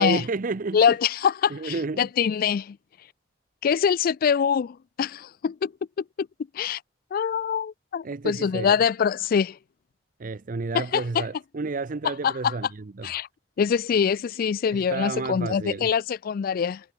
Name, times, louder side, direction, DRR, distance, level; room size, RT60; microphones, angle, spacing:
voice 1, 0.0-1.0 1.5-2.1 8.0-8.8 10.2-13.1 14.7-15.9, right 3 dB, 50° right, 0.6 m, -31 dB
voice 2, 0.7-2.8 3.6-5.7 6.5-6.8 7.1-9.6 10.7-11.2 12.2-12.5 13.0-13.3 13.6-16.8, left 7 dB, 55° left, 0.3 m, -24 dB
head